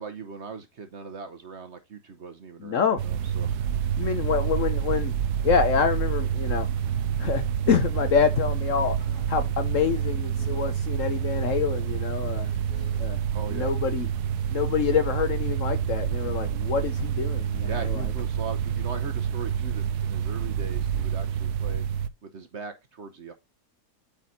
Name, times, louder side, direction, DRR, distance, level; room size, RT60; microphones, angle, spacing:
voice 1, 0.0-3.9 13.3-13.7 16.1-16.4 17.7-21.9 22.2-23.3, right 5 dB, 50° right, 1.0 m, -40 dB
voice 2, 2.6-3.0 4.0-5.1 5.4-6.7 7.2-12.5 13.0-13.2 13.5-14.1 14.5-18.0, left 7 dB, 60° left, 1.0 m, -26 dB
sound 1, 3.0-22.1, right 8 dB, 75° right, 1.1 m, -28 dB
Guitar, 8.4-13.5, left 3 dB, 80° left, 2.5 m, -51 dB
8.5 x 4.1 x 4.1 m
omnidirectional pair, 1.8 m